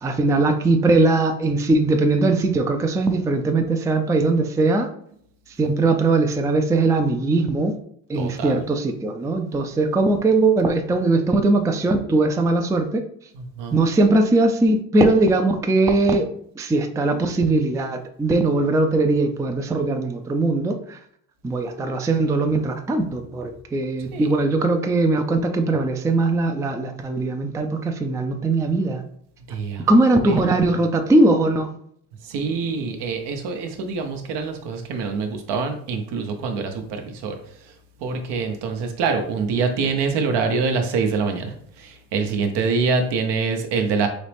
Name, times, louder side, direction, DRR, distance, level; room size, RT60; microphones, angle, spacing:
voice 1, 0.0-4.9 5.6-7.7 8.1-13.0 13.7-16.2 16.6-21.0 21.4-29.0 29.9-31.7, right 2 dB, 10° right, 6 dB, 0.4 m, -20 dB
voice 2, 8.2-8.6 13.3-13.8 24.1-24.3 29.5-29.9 30.3-30.4 32.3-37.4 38.0-44.1, right 4 dB, 70° right, 5 dB, 0.9 m, -25 dB
4.1 x 3.0 x 3.4 m, 0.67 s
supercardioid pair, 80°, 43 cm